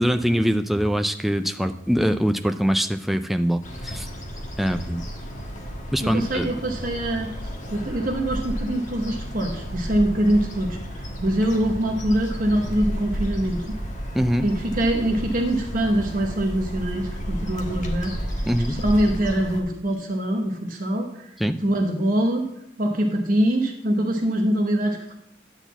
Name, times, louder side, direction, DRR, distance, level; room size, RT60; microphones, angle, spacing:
voice 1, 0.0-4.1 4.6-5.1 5.9-6.5 14.1-14.4 18.5-18.8 21.4-21.6, equal, ahead, 6 dB, 0.3 m, -23 dB
sound 1, 3.6-19.6, equal, 40° left, 1.4 m, -32 dB
voice 2, 6.0-7.3 7.7-13.6 14.4-18.1 18.7-21.3 21.6-22.5 22.8-25.1, right 1 dB, 45° right, 2 dB, 0.9 m, -24 dB
10.0 x 4.0 x 7.0 m, 0.81 s
head